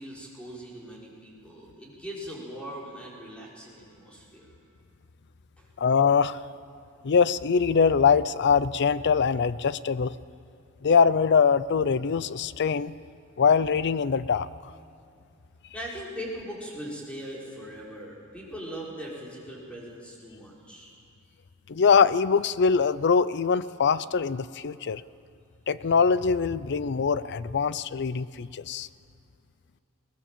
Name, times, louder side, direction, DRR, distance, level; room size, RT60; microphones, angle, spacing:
voice 1, 0.0-4.6 5.6-5.7 15.7-20.9, equal, 5° left, -4 dB, 4.7 m, -40 dB
voice 2, 5.8-6.4 7.0-10.2 10.8-12.9 13.4-14.5 21.7-25.0 25.7-28.9, left 6 dB, 50° left, 17 dB, 0.5 m, -23 dB
20.5 x 19.0 x 7.4 m, 2.6 s
head